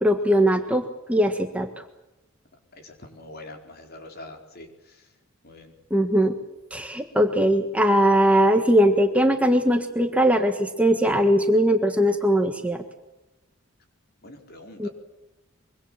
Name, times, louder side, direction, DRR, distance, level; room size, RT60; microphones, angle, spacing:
voice 1, 0.0-1.7 5.9-6.3 6.7-12.8 14.8-14.9, equal, 5° right, 5 dB, 1.5 m, -20 dB
voice 2, 2.7-5.1 5.4-5.7 14.2-14.9, left 2 dB, 50° left, 4 dB, 4.4 m, -44 dB
24.5 x 24.5 x 7.6 m, 0.98 s
head